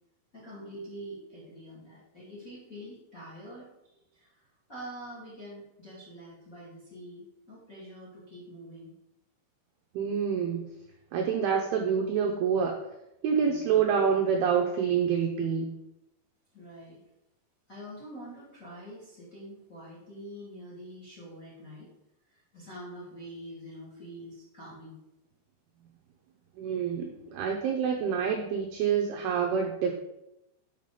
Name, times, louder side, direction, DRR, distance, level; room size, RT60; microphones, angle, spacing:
voice 1, 0.3-3.7 4.1-8.9 13.4-13.9 16.5-17.0 17.7-21.9 22.3-25.0, equal, 25° left, -6 dB, 1.8 m, -45 dB
voice 2, 9.9-10.7 11.1-12.8 13.2-15.7 26.6-29.9, right 7 dB, 80° right, 1 dB, 2.3 m, -27 dB
7.1 x 5.8 x 5.0 m, 0.86 s
omnidirectional pair, 5.4 m